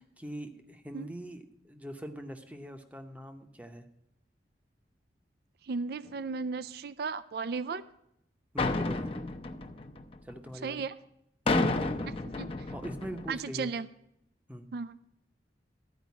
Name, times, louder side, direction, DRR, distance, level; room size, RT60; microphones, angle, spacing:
voice 1, 0.2-3.9 8.5-9.2 10.2-10.8 11.5-12.1 12.7-13.7 14.5-14.7, right 1 dB, 10° right, 6 dB, 0.8 m, -42 dB
voice 2, 5.6-7.8 10.6-11.0 12.4-12.5 13.3-13.9 14.7-15.0, right 4 dB, 60° right, 15 dB, 0.4 m, -35 dB
sound 1, 8.6-10.5 11.5-13.4, left 2 dB, 35° left, 0.6 m, -31 dB
12.5 x 5.0 x 8.2 m, 0.78 s
head